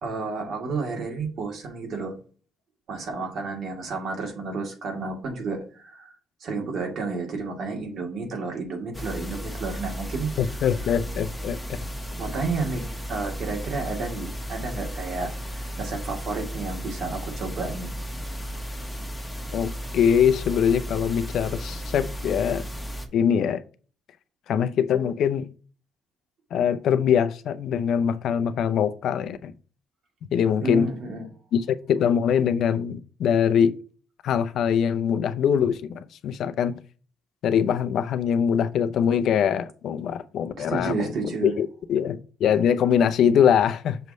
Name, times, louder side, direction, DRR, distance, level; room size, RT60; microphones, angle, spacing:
voice 1, 0.0-2.2 2.9-6.1 6.4-10.3 12.2-17.9 30.6-31.3 40.6-41.6, right 3 dB, 65° right, 2.2 m, -31 dB
sound 1, 8.9-23.1, equal, 5° left, 1.3 m, -34 dB
voice 2, 10.4-11.6 19.5-22.6 23.1-23.6 24.5-25.5 26.5-29.5 30.3-30.9 31.5-33.8 34.2-36.8 37.4-44.0, left 8 dB, 75° left, 0.6 m, -23 dB
6.6 x 3.1 x 5.4 m
cardioid pair, 90°, 0 cm